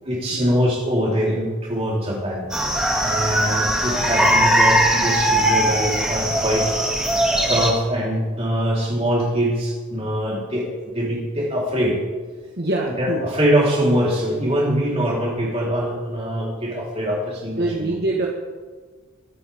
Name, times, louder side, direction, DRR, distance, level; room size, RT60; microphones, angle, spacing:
voice 1, 0.0-2.7 3.0-6.7 7.5-12.0 13.0-17.9, equal, 25° right, -4 dB, 4.2 m, -23 dB
sound 1, 2.5-7.7, right 1 dB, 5° right, 2.0 m, -20 dB
voice 2, 12.6-13.2 17.6-18.3, right 2 dB, 45° right, -2 dB, 1.6 m, -24 dB
23.5 x 10.0 x 3.7 m, 1.5 s
head